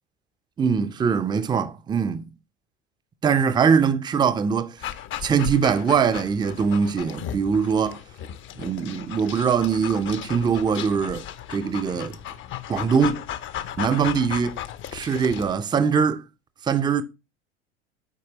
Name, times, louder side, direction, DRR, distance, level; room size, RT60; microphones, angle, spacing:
voice 1, 0.6-2.3 3.2-4.8 5.2-8.0 8.6-11.2 11.5-12.2 12.7-13.2 13.8-14.6 14.9-16.2 16.6-17.0, right 6 dB, 15° right, 0.5 m, -22 dB
Dog, 4.8-15.5, left 10 dB, 35° left, 0.6 m, -35 dB
8.2 x 4.6 x 3.0 m
figure-of-eight pair, 75°, 34 cm